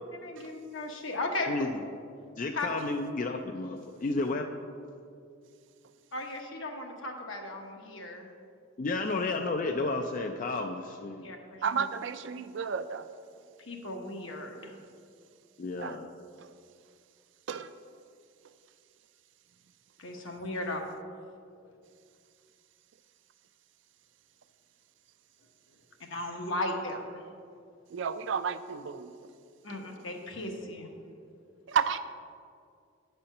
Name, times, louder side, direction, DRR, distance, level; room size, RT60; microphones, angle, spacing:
voice 1, 0.2-1.7 2.5-3.0 6.1-8.3 11.2-11.8 13.6-14.7 20.0-20.8 26.1-27.2 29.6-30.9, left 2 dB, 70° left, 2 dB, 1.1 m, -36 dB
voice 2, 2.4-4.5 8.8-11.3 15.6-16.2, left 3 dB, 40° left, 4 dB, 0.3 m, -32 dB
voice 3, 11.6-13.1 15.8-16.0 16.4-16.5 17.5-17.7 27.9-29.1 31.7-32.0, right 6 dB, 65° right, 12 dB, 0.4 m, -31 dB
9.2 x 4.3 x 6.5 m, 2.3 s
head